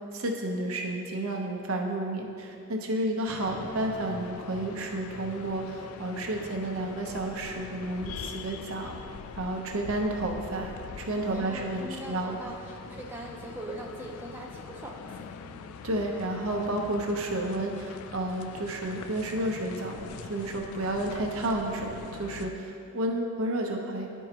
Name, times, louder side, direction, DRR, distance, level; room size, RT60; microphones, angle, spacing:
voice 1, 0.1-9.0 9.3-12.4 15.8-24.1, right 1 dB, 80° right, 1 dB, 0.8 m, -31 dB
sound 1, 3.3-22.5, left 6 dB, 85° left, 0.3 m, -43 dB
voice 2, 11.3-15.7, right 1 dB, 10° right, -2 dB, 0.5 m, -41 dB
11.0 x 4.6 x 2.9 m, 2.6 s
head